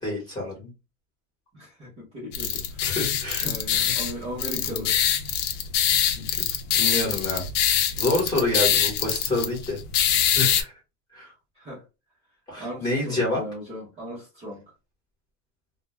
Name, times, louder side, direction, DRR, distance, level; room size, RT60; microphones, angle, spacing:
voice 1, 0.0-0.7 2.8-4.0 4.5-4.8 6.1-6.3 6.7-7.4 8.0-9.8 10.3-10.7 11.1-11.3 12.5-13.4, left 2 dB, 10° left, 1.0 m, -28 dB
voice 2, 1.5-2.6 3.4-5.0 11.6-11.8 12.6-14.6, equal, 15° right, 0.6 m, -37 dB
sound 1, 2.3-10.6, left 9 dB, 85° left, 0.6 m, -24 dB
2.2 x 2.1 x 3.0 m
supercardioid pair, 175°, 36 cm